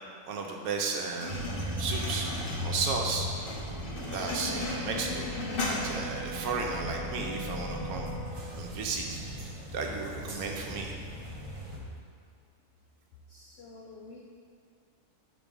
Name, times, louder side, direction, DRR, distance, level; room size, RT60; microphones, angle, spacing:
voice 1, 0.3-1.5 1.8-2.3 2.6-3.3 4.1-5.3 5.7-8.2 8.5-11.0, right 4 dB, 75° right, 1 dB, 1.1 m, -34 dB
sound 1, 1.2-6.2, left 2 dB, 45° left, 0.8 m, -37 dB
sound 2, 1.3-11.8, equal, 40° right, 0.4 m, -38 dB
Brass instrument, 4.1-8.4, left 3 dB, 20° right, 1.0 m, -44 dB
voice 2, 13.3-14.4, left 3 dB, 85° left, 0 dB, 0.5 m, -49 dB
4.8 x 4.0 x 5.2 m, 2.2 s
omnidirectional pair, 1.6 m